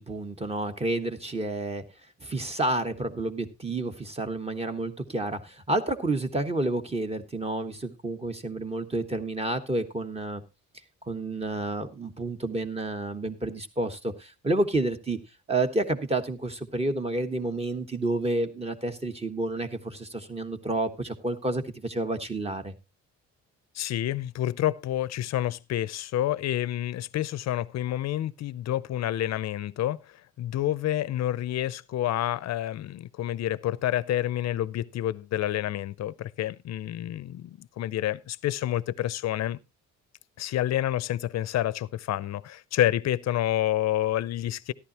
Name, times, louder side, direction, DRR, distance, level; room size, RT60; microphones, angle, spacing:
voice 1, 0.0-1.8 2.2-10.4 11.1-15.2 15.5-22.7, right 2 dB, 20° right, 1.3 m, -30 dB
voice 2, 23.7-39.6 40.4-44.7, left 13 dB, 60° left, 0.6 m, -28 dB
13.5 x 11.0 x 2.9 m
cardioid pair, 90°, 30 cm